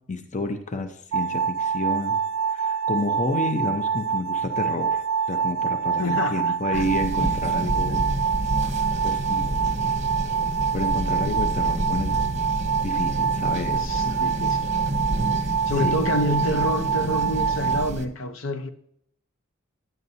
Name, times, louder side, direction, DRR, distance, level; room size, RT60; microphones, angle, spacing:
voice 1, 0.0-2.2 2.5-8.1 9.0-9.7 10.7-12.2 12.8-13.8 15.3-16.1, left 2 dB, 40° left, 0.7 m, -30 dB
sound 1, 1.1-17.9, right 6 dB, 85° right, 0.3 m, -26 dB
voice 2, 6.0-6.8 7.2-7.3 13.7-14.7 15.7-18.7, left 1 dB, 70° left, 0.8 m, -28 dB
sound 2, 6.7-18.1, right 1 dB, 35° right, 0.9 m, -29 dB
11.0 x 9.2 x 2.7 m
head